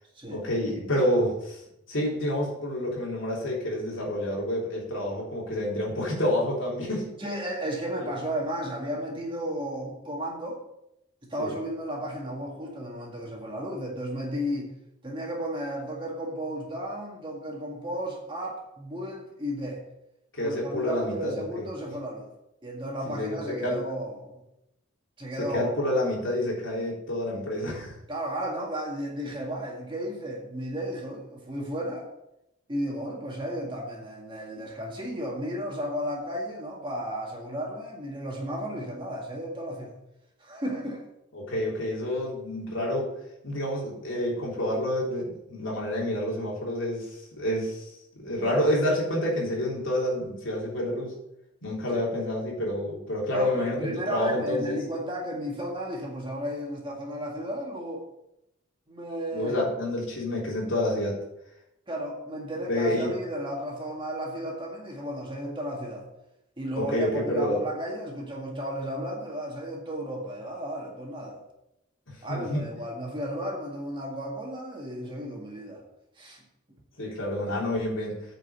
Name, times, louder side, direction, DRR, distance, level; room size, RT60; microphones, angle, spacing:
voice 1, 0.3-1.6 1.9-7.1 8.0-8.1 11.4-11.5 20.3-21.7 23.1-23.8 25.4-28.0 41.3-43.1 43.4-47.9 48.1-51.1 51.6-54.8 59.3-61.2 62.7-63.1 66.8-67.6 72.1-72.7 77.0-78.2, left 1 dB, 65° left, -3 dB, 3.5 m, -28 dB
voice 2, 7.2-10.6 11.2-14.7 15.0-19.8 20.4-22.3 22.6-24.4 25.2-26.0 28.1-32.1 32.7-39.9 40.4-41.0 51.9-52.1 53.3-58.0 58.9-59.6 61.9-66.1 66.6-71.4 72.2-75.8 76.2-76.4, equal, 25° right, -1 dB, 1.9 m, -34 dB
8.9 x 5.4 x 6.8 m, 0.84 s
head